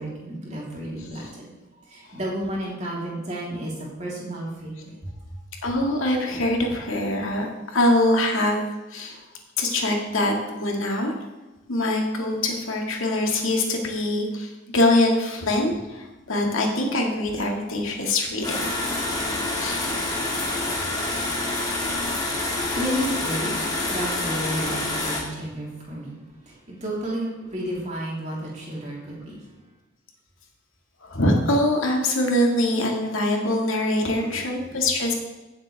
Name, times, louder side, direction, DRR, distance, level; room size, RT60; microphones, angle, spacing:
voice 1, 0.0-1.4 1.9-3.7 4.0-5.0 22.7-23.5 23.9-26.1 26.7-29.3 34.2-34.3, equal, 35° right, -5 dB, 3.4 m, -31 dB
voice 2, 1.0-1.3 5.6-7.5 7.7-8.6 8.9-9.2 9.6-11.1 11.7-18.7 19.6-19.8 23.8-24.2 31.0-35.1, left 1 dB, 80° left, 1 dB, 2.0 m, -23 dB
sound 1, 18.4-25.2, left 2 dB, 20° left, 2.0 m, -27 dB
16.0 x 7.5 x 3.5 m, 1.1 s
head